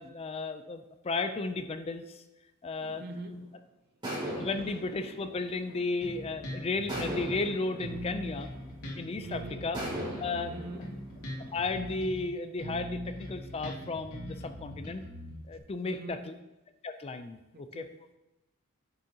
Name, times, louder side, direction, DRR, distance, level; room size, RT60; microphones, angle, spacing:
voice 1, 0.0-2.2 2.6-3.0 4.4-8.5 8.9-9.8 10.2-10.5 11.5-15.0 15.5-16.3 16.8-17.8, left 3 dB, 25° left, 9 dB, 0.4 m, -34 dB
sound 1, 2.8-3.4 4.0-6.3 6.9-9.1 9.7-12.0, right 1 dB, 20° right, 2.7 m, -40 dB
voice 2, 3.0-3.6 9.2-9.7 10.5-10.9 15.8-16.3 17.5-18.0, right 1 dB, 45° right, 9 dB, 0.5 m, -42 dB
Bass guitar, 6.0-7.5 7.8-12.3 12.6-15.6, equal, 90° left, 2.1 m, -41 dB
9.5 x 6.5 x 2.8 m, 1.0 s
head